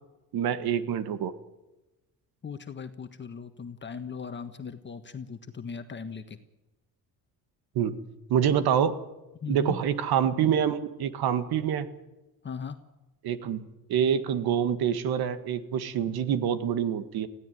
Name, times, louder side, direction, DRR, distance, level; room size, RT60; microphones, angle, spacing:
voice 1, 0.3-1.3 7.8-8.0 8.3-8.9 9.5-11.9 13.2-13.6 13.9-17.3, right 8 dB, 75° right, 12 dB, 1.9 m, -26 dB
voice 2, 2.4-6.4 9.4-9.8 12.4-12.8, left 6 dB, 30° left, 8 dB, 1.4 m, -38 dB
21.0 x 16.0 x 9.4 m, 1.0 s
cardioid pair, 130°, 37 cm